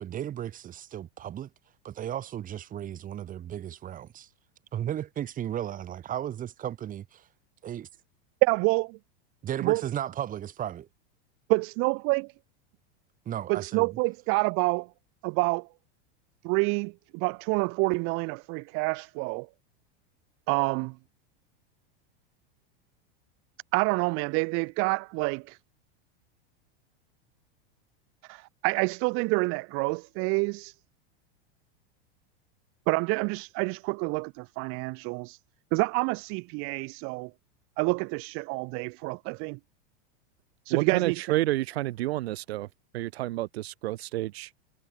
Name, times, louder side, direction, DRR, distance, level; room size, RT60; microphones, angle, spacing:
voice 1, 0.0-1.5 1.8-4.3 4.7-7.3 7.6-7.8 9.4-10.9 13.2-13.9, right 10 dB, 25° right, 6.5 m, -35 dB
voice 2, 8.4-8.9 9.6-9.8 11.5-12.3 13.5-14.9 15.2-15.7 16.4-19.5 20.5-21.0 23.7-25.6 28.2-30.7 32.9-35.4 35.7-37.3 37.8-39.6 40.6-41.2, right 30 dB, 40° right, 1.2 m, -27 dB
voice 3, 40.7-42.7 42.9-44.5, right 16 dB, 75° right, 1.2 m, -29 dB
supercardioid pair, 150°, 31 cm